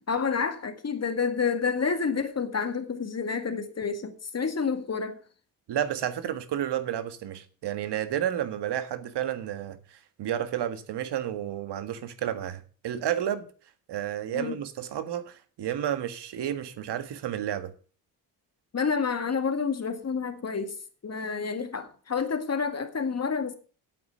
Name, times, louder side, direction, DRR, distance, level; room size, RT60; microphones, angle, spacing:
voice 1, 0.0-5.2 14.3-14.6 18.7-20.8 21.0-23.5, left 5 dB, 35° left, 2.0 m, -29 dB
voice 2, 5.7-13.5 13.9-17.7, right 10 dB, 75° right, 1.6 m, -31 dB
8.6 x 8.5 x 7.5 m
supercardioid pair, 70°, 42 cm